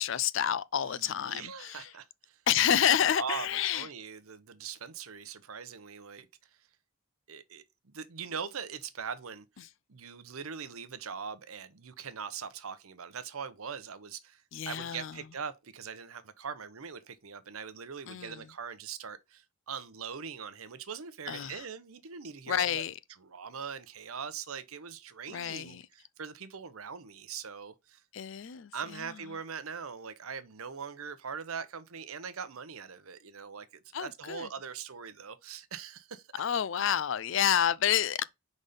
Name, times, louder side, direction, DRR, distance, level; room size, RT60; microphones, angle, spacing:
voice 1, 0.0-1.9 2.5-3.9 14.5-15.1 18.1-18.4 21.3-21.6 22.5-22.9 25.3-25.8 28.1-28.7 33.9-34.5 36.4-38.2, left 9 dB, 60° left, 0.4 m, -29 dB
voice 2, 0.8-2.4 2.9-6.3 7.3-22.8 23.2-28.0 28.7-36.3 36.8-36.9, right 6 dB, 80° right, 0.8 m, -42 dB
5.3 x 4.1 x 5.0 m
head